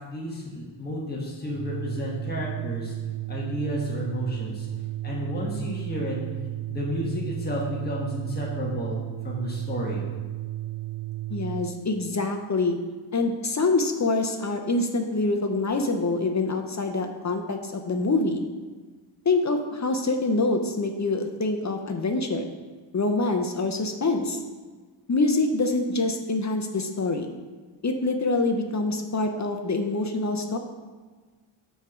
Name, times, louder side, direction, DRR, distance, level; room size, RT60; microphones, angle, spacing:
voice 1, 0.0-2.9 3.3-4.7 5.0-6.2 6.7-9.0 9.2-10.0, left 1 dB, 20° left, -4 dB, 1.3 m, -31 dB
Organ, 1.5-11.8, right 15 dB, 25° right, 0.4 m, -34 dB
voice 2, 11.3-12.8 13.1-18.4 19.3-22.5 22.9-24.4 25.1-27.3 27.8-30.6, left 3 dB, 35° left, 4 dB, 0.6 m, -25 dB
5.6 x 4.4 x 6.2 m, 1.4 s
wide cardioid pair, 135°, 49 cm